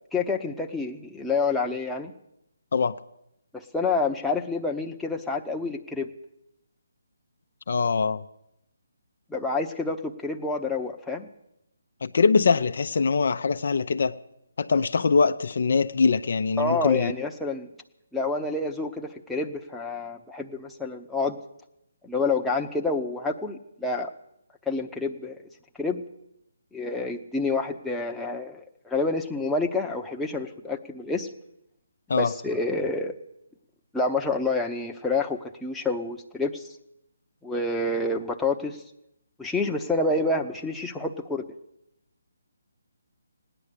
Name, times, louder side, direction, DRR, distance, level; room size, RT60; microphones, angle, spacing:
voice 1, 0.1-2.1 3.5-6.1 9.3-11.3 16.6-17.7 18.1-21.4 22.0-24.1 24.7-25.4 25.8-26.0 26.7-31.3 32.2-33.1 33.9-36.7 37.4-38.8 39.4-41.4, left 3 dB, 5° left, 0.9 m, -28 dB
voice 2, 7.7-8.2 12.0-14.2 14.6-17.1 32.1-32.3, left 5 dB, 60° left, 0.7 m, -23 dB
17.0 x 10.0 x 8.3 m
figure-of-eight pair, 150°, 0 cm